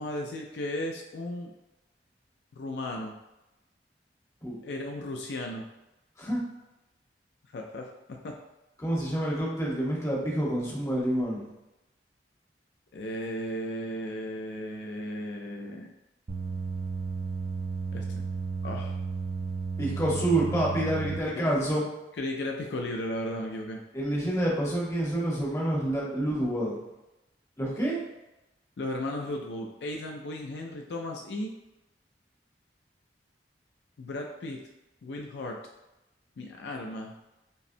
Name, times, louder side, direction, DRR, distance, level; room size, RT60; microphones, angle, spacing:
voice 1, 0.0-1.5 2.5-3.2 4.6-5.6 7.5-8.3 12.9-15.9 17.9-18.2 18.6-19.0 21.3-21.4 22.2-23.8 28.8-31.5 34.0-34.6 35.0-35.6 36.4-37.1, left 1 dB, 70° left, 1 dB, 0.4 m, -35 dB
voice 2, 8.8-11.4 19.8-21.9 23.9-26.8 27.6-28.0, right 1 dB, 15° left, -4 dB, 0.9 m, -28 dB
sound 1, 16.3-21.2, right 4 dB, 35° right, 0.3 m, -33 dB
5.3 x 2.1 x 2.6 m, 0.96 s
head